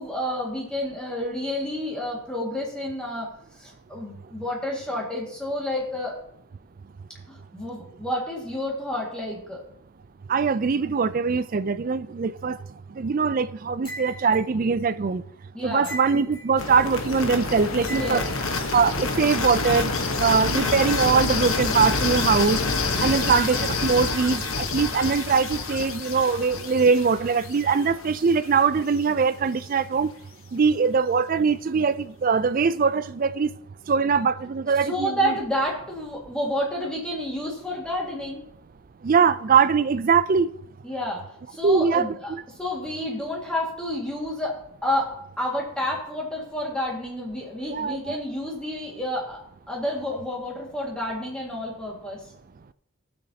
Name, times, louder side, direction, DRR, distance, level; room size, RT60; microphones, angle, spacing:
voice 1, 0.0-3.3 3.6-6.2 7.3-9.6 15.5-15.9 17.9-18.2 23.0-23.3 34.8-38.4 40.8-49.4 49.7-52.2, left 1 dB, 5° left, 1.9 m, -30 dB
voice 2, 10.3-12.6 13.0-15.2 15.6-18.2 18.7-19.9 20.2-22.6 23.0-30.1 30.5-33.5 33.9-35.3 39.0-40.5 41.6-42.4 47.7-48.2, right 5 dB, 40° right, 0.4 m, -22 dB
sound 1, 13.8-14.4 15.8-16.5 17.8-18.4, right 1 dB, 20° left, 3.4 m, -38 dB
sound 2, 16.6-28.5, left 3 dB, 75° left, 1.1 m, -27 dB
18.5 x 6.5 x 2.8 m
head